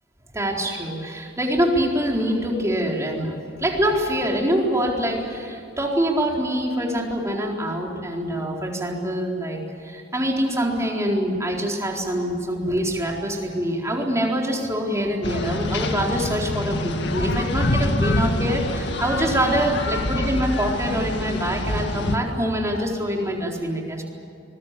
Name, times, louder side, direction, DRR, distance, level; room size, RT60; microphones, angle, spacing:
voice 1, 0.3-24.0, equal, 15° right, 0 dB, 4.2 m, -25 dB
sound 1, 15.2-22.2, left 1 dB, 65° left, 2.1 m, -26 dB
25.5 x 21.5 x 8.5 m, 2.6 s
head